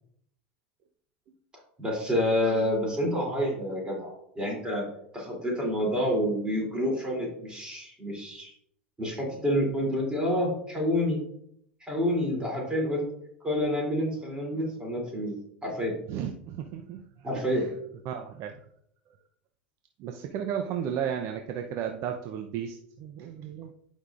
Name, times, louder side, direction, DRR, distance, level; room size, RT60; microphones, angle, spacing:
voice 1, 1.8-4.8 5.1-8.5 9.0-11.2 11.8-13.0 13.4-15.3 15.6-15.9 17.2-17.6, equal, 15° right, -1 dB, 2.9 m, -28 dB
voice 2, 16.1-17.7 18.0-18.7 20.0-23.7, right 8 dB, 50° right, 5 dB, 0.6 m, -34 dB
10.0 x 5.4 x 2.5 m, 0.71 s
hypercardioid pair, 90°, 6 cm